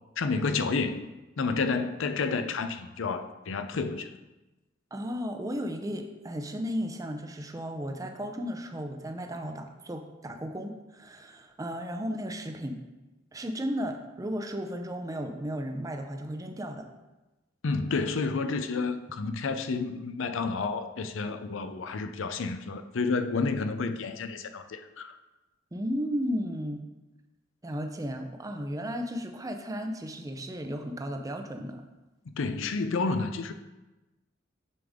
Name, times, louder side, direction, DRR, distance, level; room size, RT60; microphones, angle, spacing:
voice 1, 0.2-1.0 1.4-4.1 17.6-25.2 32.3-33.5, left 4 dB, 70° left, 0.5 m, -30 dB
voice 2, 4.9-12.8 13.3-16.9 25.7-26.8 27.6-31.8, equal, 15° right, 0.6 m, -34 dB
7.1 x 6.7 x 3.6 m
head